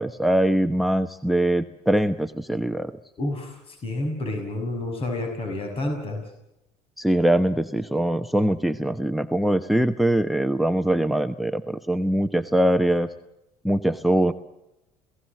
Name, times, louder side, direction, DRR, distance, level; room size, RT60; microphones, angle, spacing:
voice 1, 0.0-2.9 7.0-13.1 13.6-14.3, right 1 dB, ahead, 12 dB, 1.1 m, -22 dB
voice 2, 3.2-3.5 3.8-6.2, left 2 dB, 40° left, 4 dB, 6.1 m, -29 dB
28.5 x 17.5 x 7.8 m, 0.91 s
supercardioid pair, 85°, 15 cm